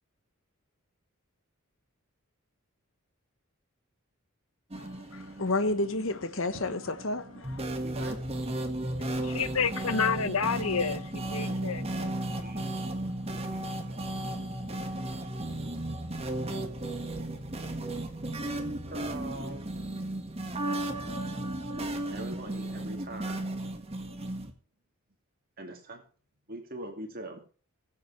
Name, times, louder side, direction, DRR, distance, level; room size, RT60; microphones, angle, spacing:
voice 1, 4.7-7.6, left 2 dB, 65° left, 1.2 m, -31 dB
sound 1, 4.7-24.5, right 1 dB, 30° right, 1.7 m, -35 dB
voice 2, 7.7-8.2 12.4-12.7 13.4-13.6 13.9-14.0 18.8-19.8 22.1-23.6 25.6-26.0 26.5-27.4, right 1 dB, 45° right, 2.4 m, -42 dB
voice 3, 9.2-12.2, left 5 dB, 85° left, 0.9 m, -30 dB
21.0 x 7.4 x 3.3 m
head